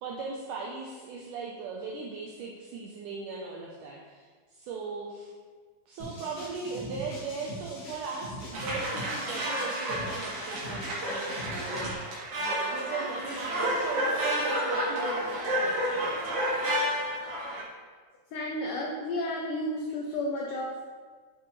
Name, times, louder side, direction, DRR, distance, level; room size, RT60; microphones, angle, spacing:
voice 1, 0.0-5.3 5.9-12.0 12.4-16.2, right 4 dB, 85° right, -1 dB, 1.8 m, -39 dB
sound 1, 6.0-11.9, equal, 55° left, 3.2 m, -42 dB
sound 2, 8.5-17.6, equal, 55° right, 2.9 m, -30 dB
voice 2, 18.3-20.8, left 1 dB, 80° left, -1 dB, 1.9 m, -32 dB
9.4 x 6.2 x 3.2 m, 1.5 s
omnidirectional pair, 4.5 m